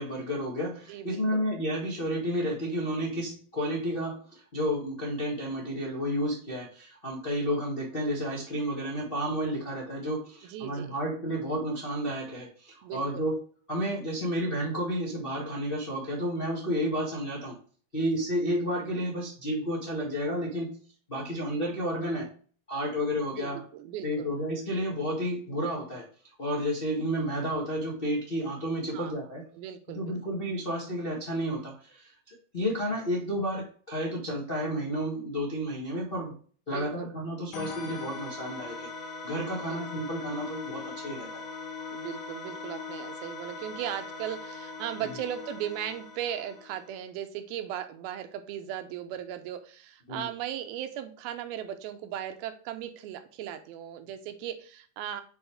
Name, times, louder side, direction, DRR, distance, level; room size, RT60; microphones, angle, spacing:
voice 1, 0.0-13.4 13.7-17.6 17.9-20.8 21.1-22.3 22.7-23.6 24.0-26.1 26.4-29.4 29.9-36.3 36.7-38.9 39.2-41.4 50.1-50.3, equal, 65° left, -4 dB, 0.5 m, -31 dB
voice 2, 0.9-1.4 10.5-10.9 12.8-13.2 23.3-24.3 28.9-29.1 29.6-30.1 36.7-37.1 39.6-39.8 41.9-55.2, right 10 dB, 80° right, 8 dB, 2.6 m, -37 dB
sound 1, 37.5-47.0, left 4 dB, 80° left, 2.9 m, -40 dB
8.0 x 3.6 x 3.3 m, 0.43 s
omnidirectional pair, 4.3 m